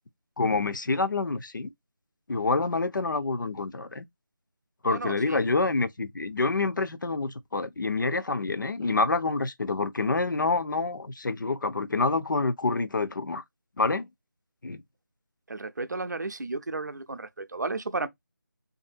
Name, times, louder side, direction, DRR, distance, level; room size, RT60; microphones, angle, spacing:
voice 1, 0.4-1.7 2.3-4.0 4.8-13.4 13.8-14.1 14.6-14.8, left 3 dB, 65° left, 0.5 m, -27 dB
voice 2, 4.9-5.4 15.5-18.1, right 3 dB, 55° right, 0.5 m, -33 dB
2.6 x 2.6 x 2.4 m
figure-of-eight pair, 175°, 11 cm